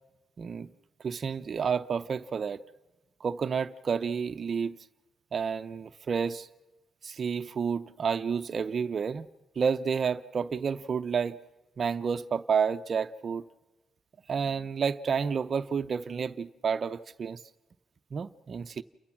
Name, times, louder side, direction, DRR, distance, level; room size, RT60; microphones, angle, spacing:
voice 1, 0.4-0.7 1.0-2.6 3.2-4.8 5.3-6.5 7.0-9.3 9.6-11.4 11.8-13.5 14.3-17.4 18.1-18.8, right 6 dB, 45° right, 0.6 m, -30 dB
29.5 x 15.0 x 5.9 m
cardioid pair, 120°, 0 cm